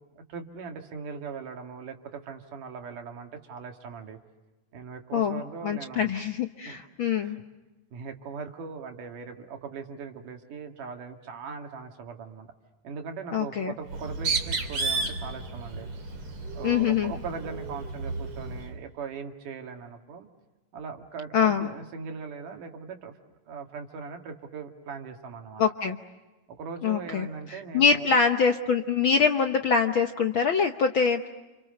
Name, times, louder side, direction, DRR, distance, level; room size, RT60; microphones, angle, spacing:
voice 1, 0.2-4.2 4.7-6.1 6.7-6.8 7.2-7.4 7.9-12.5 12.8-15.9 16.5-20.3 20.7-23.1 23.5-25.6 26.5-28.1, right 5 dB, 85° right, 4 dB, 3.7 m, -40 dB
voice 2, 5.1-7.4 13.3-13.7 16.6-17.1 21.3-21.7 25.6-26.0 26.8-31.3, left 6 dB, 60° left, 6 dB, 1.3 m, -24 dB
Bird, 13.8-18.7, right 3 dB, 45° right, 3.7 m, -32 dB
29.5 x 29.0 x 6.6 m, 1.1 s
omnidirectional pair, 3.6 m